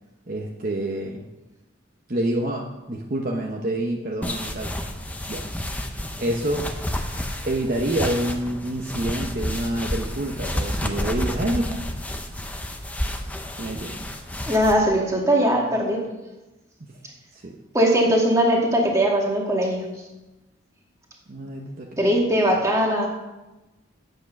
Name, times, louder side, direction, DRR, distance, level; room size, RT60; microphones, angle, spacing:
voice 1, 0.3-1.3 2.1-4.7 5.3-5.4 6.2-6.7 7.4-11.8 13.5-14.0 16.8-16.9 17.3-17.6 21.3-22.0, right 1 dB, 40° right, 0 dB, 0.9 m, -27 dB
sound 1, 4.2-14.7, left 1 dB, 5° left, 0.7 m, -30 dB
voice 2, 14.5-16.0 17.7-19.9 22.0-23.1, equal, 15° right, -1 dB, 1.9 m, -20 dB
9.2 x 8.0 x 6.0 m, 1.1 s
head